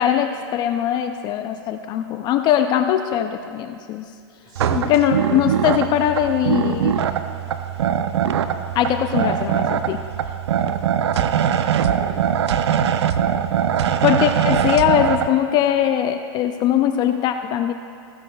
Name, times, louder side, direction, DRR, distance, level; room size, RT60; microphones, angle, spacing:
voice 1, 0.0-4.1 4.7-7.0 8.7-10.0 14.0-17.7, left 10 dB, 30° left, 7 dB, 0.4 m, -21 dB
voice 2, 4.4-5.0 11.0-12.6, right 2 dB, 30° right, 1 dB, 2.1 m, -43 dB
sound 1, 4.6-15.3, right 9 dB, 85° right, 0.6 m, -21 dB
15.5 x 14.5 x 2.3 m, 2.4 s
hypercardioid pair, 135°, 14 cm